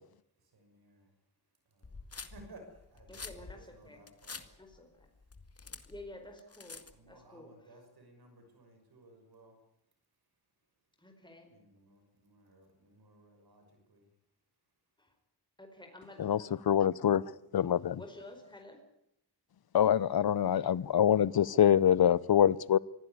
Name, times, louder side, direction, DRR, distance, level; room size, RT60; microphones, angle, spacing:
voice 1, 0.4-1.1 1.7-4.4 6.9-9.6 11.5-14.0, right 2 dB, 70° right, 5 dB, 6.3 m, -58 dB
sound 1, 1.8-7.1, left 4 dB, 35° left, 1.9 m, -47 dB
voice 2, 3.1-4.0 4.6-5.1 5.9-7.5 11.0-11.5 15.0-15.1 15.6-16.6 17.9-18.8 20.5-20.8, left 1 dB, 10° left, 4 dB, 4.6 m, -51 dB
voice 3, 16.2-17.2 17.5-18.0 19.7-22.8, left 9 dB, 65° left, 21 dB, 0.8 m, -25 dB
24.0 x 16.0 x 9.7 m, 0.81 s
cardioid pair, 75°, 39 cm